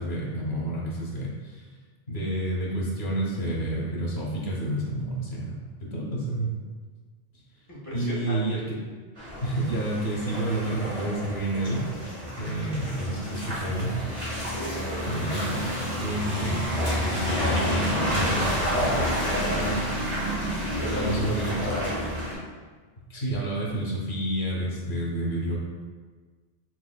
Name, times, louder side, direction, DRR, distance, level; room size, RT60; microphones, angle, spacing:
voice 1, 0.0-1.6 2.1-6.5 7.9-8.8 9.4-11.9 12.4-14.0 15.0-15.7 16.0-18.5 18.8-18.9 20.9-21.6 23.0-25.6, right 1 dB, 80° left, -5 dB, 1.4 m, -29 dB
voice 2, 7.7-8.4 14.4-15.1 19.2-19.8 20.7-21.3 21.6-22.1, equal, 15° left, -8 dB, 1.4 m, -34 dB
Car passing by / Engine, 9.2-22.3, equal, 40° right, 1.7 m, -29 dB
4.8 x 4.0 x 2.3 m, 1.5 s
omnidirectional pair, 1.0 m